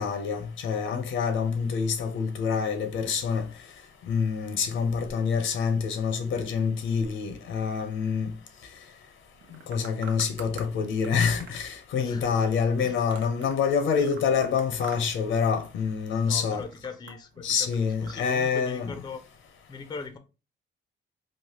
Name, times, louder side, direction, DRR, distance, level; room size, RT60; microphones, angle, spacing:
voice 1, 0.0-3.5 4.1-8.3 9.7-16.6 17.4-19.0, left 6 dB, 75° left, 0.6 m, -26 dB
sound 1, 9.4-10.7 11.0-13.6 13.9-15.3 15.5-16.0 16.4-18.2, right 5 dB, 65° right, 0.7 m, -46 dB
voice 2, 12.0-12.3 12.8-12.9 13.9-14.2 16.2-19.2 19.7-20.2, left 4 dB, 20° left, 0.4 m, -40 dB
3.3 x 2.1 x 2.9 m
cardioid pair, 90°, 20 cm